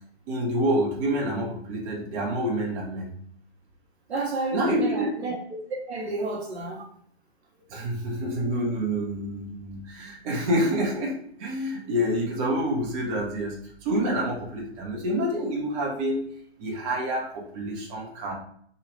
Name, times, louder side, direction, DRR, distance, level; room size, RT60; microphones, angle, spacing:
voice 1, 0.3-3.1 4.5-5.1 7.7-13.5 13.8-16.2 16.6-18.3, equal, 30° right, -2 dB, 0.8 m, -27 dB
voice 2, 4.1-5.4 5.9-6.8, right 3 dB, 70° right, 0 dB, 1.0 m, -30 dB
3.0 x 2.4 x 3.1 m, 0.63 s
figure-of-eight pair, 125°, 33 cm